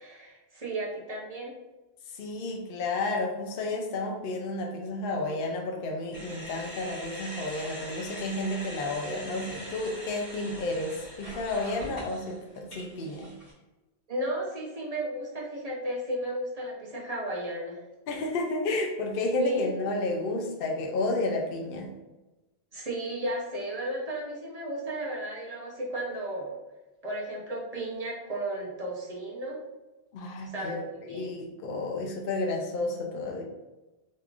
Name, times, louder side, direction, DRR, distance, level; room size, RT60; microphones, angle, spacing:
voice 1, 0.0-1.5 11.8-11.9 14.1-17.8 19.4-19.7 22.7-26.6 27.0-29.6 30.5-31.3, right 1 dB, 45° right, -3 dB, 0.6 m, -34 dB
voice 2, 2.1-13.3 18.1-21.9 30.1-30.8 31.1-33.4, left 2 dB, 65° left, 1 dB, 0.7 m, -31 dB
sound 1, 6.1-13.5, equal, 30° left, 1.6 m, -42 dB
3.6 x 3.0 x 2.3 m, 1.1 s
omnidirectional pair, 1.1 m